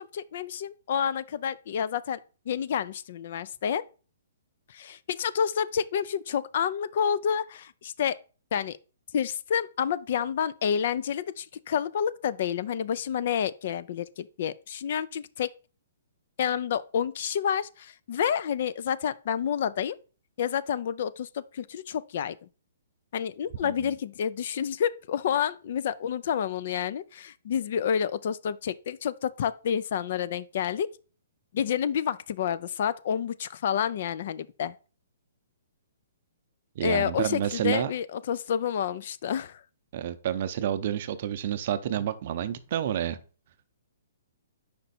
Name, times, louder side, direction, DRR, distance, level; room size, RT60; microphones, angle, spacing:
voice 1, 0.0-2.2 2.5-3.8 4.7-8.2 8.5-8.8 9.1-15.5 16.4-20.0 20.4-22.4 23.1-30.9 31.5-34.7 36.8-39.6, left 8 dB, 55° left, 0.4 m, -29 dB
voice 2, 23.6-23.9 36.8-37.9 39.9-43.2, right 10 dB, 50° right, 0.6 m, -29 dB
5.2 x 4.4 x 4.1 m
hypercardioid pair, 150°, 0 cm